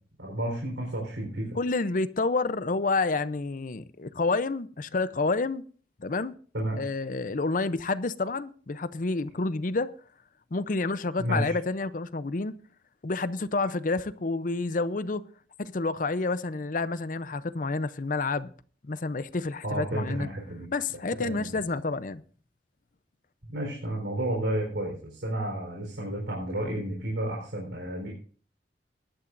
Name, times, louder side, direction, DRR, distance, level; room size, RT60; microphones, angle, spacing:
voice 1, 0.2-1.5 6.5-6.8 11.2-11.6 19.6-20.7 21.2-21.6 23.4-28.1, right 1 dB, 85° right, 4.2 m, -31 dB
voice 2, 1.6-5.6 6.0-6.3 6.8-9.9 10.5-12.6 13.0-15.2 15.6-18.5 18.8-20.3 20.7-22.2, left 3 dB, 45° left, 0.6 m, -29 dB
20.0 x 11.5 x 2.6 m
head